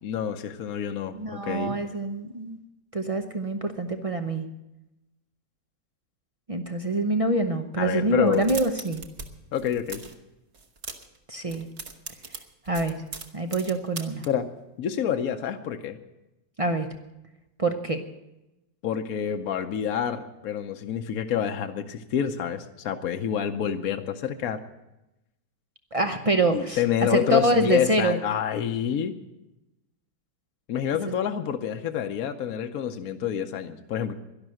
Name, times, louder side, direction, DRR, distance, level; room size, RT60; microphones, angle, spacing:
voice 1, 0.0-1.8 7.8-8.5 9.5-10.0 14.3-14.5 14.8-16.0 18.8-24.6 26.5-29.1 30.7-34.1, left 9 dB, 60° left, 5 dB, 1.1 m, -28 dB
voice 2, 1.1-2.6 2.9-4.5 6.5-9.0 11.3-11.7 12.7-12.9 13.3-14.2 16.6-16.9 17.6-18.0 25.9-26.8 27.1-28.2 31.1-31.2, right 2 dB, 60° right, 6 dB, 0.3 m, -25 dB
sound 1, 8.3-9.3 9.5-10.2 10.5-11.2 11.4-14.3, right 4 dB, 40° right, 1.4 m, -39 dB
12.0 x 11.5 x 7.7 m, 0.96 s
omnidirectional pair, 1.9 m